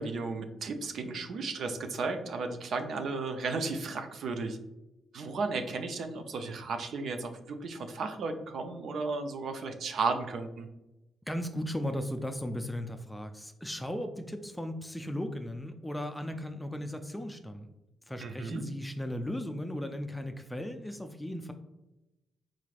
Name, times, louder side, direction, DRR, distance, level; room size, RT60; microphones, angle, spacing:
voice 1, 0.0-4.6 5.1-10.7 18.2-18.6, right 4 dB, 65° right, 6 dB, 0.4 m, -34 dB
voice 2, 11.3-17.7 18.1-21.5, left 1 dB, 10° left, 6 dB, 0.4 m, -36 dB
3.8 x 3.1 x 2.4 m, 0.97 s
supercardioid pair, 50°, 0 cm